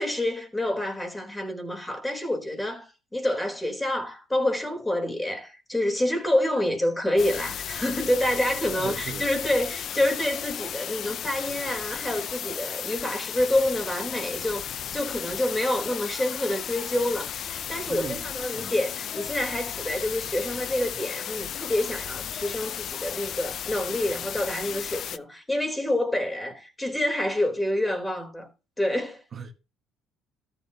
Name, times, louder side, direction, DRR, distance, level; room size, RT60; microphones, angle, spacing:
voice 1, 0.0-28.5 28.8-29.2, left 1 dB, 10° left, 3.7 m, -27 dB
sound 1, 7.2-25.2, left 9 dB, 55° left, 0.5 m, -34 dB
voice 2, 8.8-9.3 17.9-18.2 18.5-18.7 29.3-29.5, right 6 dB, 45° right, 1.5 m, -37 dB
13.5 x 7.9 x 2.9 m
supercardioid pair, 70°, 0 cm